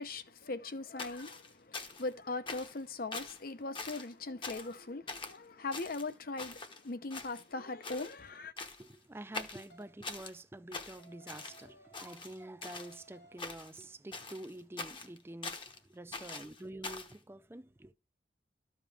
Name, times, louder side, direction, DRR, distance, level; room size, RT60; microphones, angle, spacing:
voice 1, 0.0-8.5, left 3 dB, 55° left, 0.7 m, -40 dB
sound 1, 1.0-2.1 2.5-2.8 3.1-3.4 3.7-4.1 4.4-4.8 5.1-5.4 5.7-6.8 7.1-7.6 7.8-8.1 8.6-8.9 9.3-10.3 10.7-11.6 11.9-13.0 13.4-13.8 14.1-15.8 16.1-17.1, left 3 dB, 25° left, 0.9 m, -44 dB
voice 2, 8.8-17.9, right 1 dB, 15° right, 0.5 m, -48 dB
sound 2, 9.7-10.0 11.0-12.4 12.7-13.6, right 2 dB, 80° left, 2.9 m, -60 dB
13.0 x 5.2 x 3.4 m
head